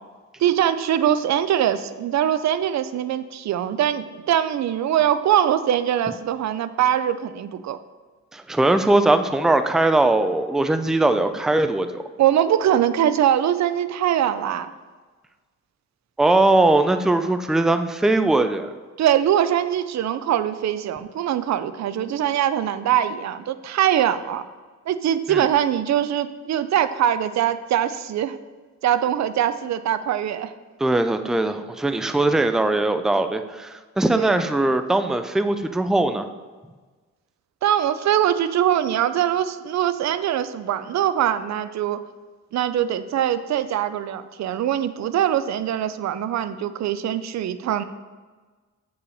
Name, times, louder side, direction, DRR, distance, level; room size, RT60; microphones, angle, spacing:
voice 1, 0.4-7.8 12.2-14.7 19.0-24.4 24.9-28.4 28.8-30.5 34.1-34.4 37.6-42.0 42.5-47.8, right 10 dB, 65° right, 12 dB, 0.5 m, -22 dB
voice 2, 8.3-12.0 16.2-18.7 25.3-25.4 30.8-36.3, right 2 dB, ahead, 8 dB, 0.4 m, -20 dB
8.1 x 5.6 x 4.1 m, 1.4 s
cardioid pair, 95°, 30 cm